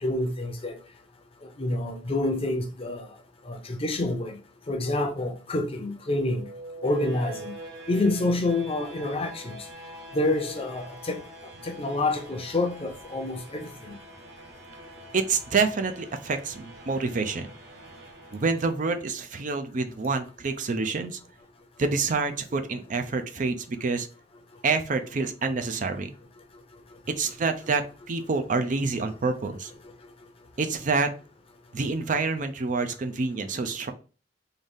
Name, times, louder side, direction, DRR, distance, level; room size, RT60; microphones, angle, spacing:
voice 1, 0.0-0.8 1.6-3.0 3.5-4.4 4.7-6.5 6.8-7.5 7.9-9.4 10.1-11.2 11.6-13.9, left 2 dB, 30° left, 0.6 m, -27 dB
sound 1, 6.1-19.1, right 1 dB, 70° right, 1.1 m, -45 dB
voice 2, 15.1-17.5 18.3-21.2 21.8-24.1 24.6-26.1 27.2-29.7 30.6-31.1 31.7-33.9, right 4 dB, 45° right, 0.5 m, -27 dB
3.9 x 2.6 x 3.5 m
head